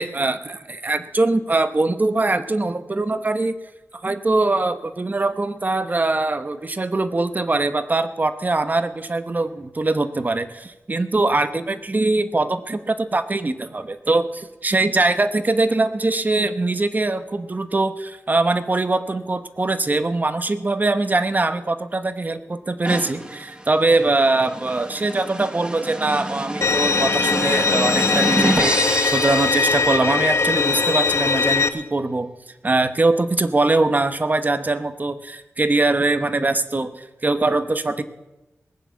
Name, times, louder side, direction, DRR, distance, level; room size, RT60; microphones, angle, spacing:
voice 1, 0.0-3.5 4.0-32.3 32.6-38.0, right 2 dB, 35° right, 11 dB, 1.0 m, -22 dB
sound 1, 22.8-30.4, right 1 dB, 20° right, 1.3 m, -27 dB
Bowed string instrument, 26.6-31.7, left 4 dB, 60° left, 0.9 m, -20 dB
19.0 x 7.3 x 8.2 m, 1.0 s
wide cardioid pair, 65°, 5 cm